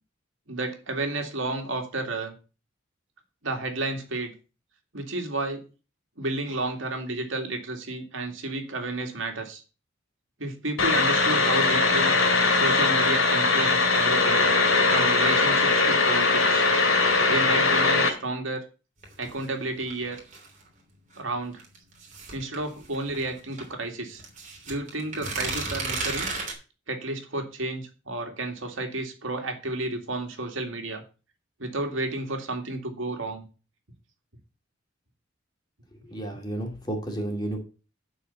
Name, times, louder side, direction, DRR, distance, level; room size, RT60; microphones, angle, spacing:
voice 1, 0.5-2.3 3.4-4.3 4.9-5.6 6.2-9.6 10.4-12.2 12.5-14.4 14.9-16.7 17.3-18.7 19.2-20.2 21.2-21.6 22.3-24.2 24.7-26.3 26.9-31.0 31.6-33.5, right 2 dB, 70° right, 4 dB, 2.3 m, -31 dB
sound 1, 10.8-18.1, left 3 dB, 85° left, 2.7 m, -21 dB
sound 2, 19.0-20.6 21.6-23.7 24.2-26.5, right 3 dB, 40° right, 3.2 m, -33 dB
voice 2, 36.0-37.6, right 1 dB, 20° left, 2 dB, 2.4 m, -32 dB
11.5 x 4.7 x 6.9 m, 0.33 s
head